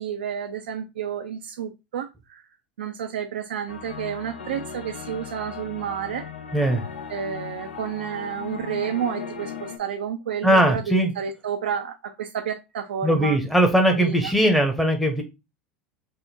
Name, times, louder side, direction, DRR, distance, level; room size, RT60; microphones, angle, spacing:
voice 1, 0.0-2.4 2.8-6.3 7.1-13.4 13.9-14.3, right 8 dB, 80° right, 6 dB, 0.4 m, -30 dB
sound 1, 3.7-9.8, left 7 dB, 85° left, 0.6 m, -37 dB
voice 2, 6.5-6.8 10.4-11.1 13.0-15.2, right 1 dB, ahead, 3 dB, 0.8 m, -19 dB
3.5 x 2.0 x 4.2 m, 0.25 s
hypercardioid pair, 90°, 6 cm